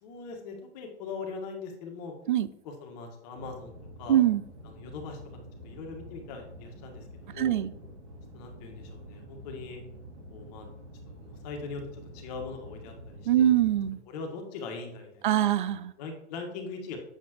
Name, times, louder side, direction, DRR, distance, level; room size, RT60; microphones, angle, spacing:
voice 1, 0.0-2.1 2.6-4.2 4.6-5.2 5.6-7.6 8.3-9.8 10.3-10.7 11.0-13.5 14.1-15.3 16.0-17.0, left 4 dB, 35° left, 3 dB, 1.6 m, -41 dB
sound 1, 3.3-13.9, equal, 75° right, 3.1 m, -47 dB
voice 2, 4.1-4.4 7.4-7.7 13.3-14.0 15.2-15.9, right 11 dB, 45° right, 16 dB, 0.5 m, -23 dB
7.6 x 7.3 x 3.0 m, 0.78 s
figure-of-eight pair, 115°, 35 cm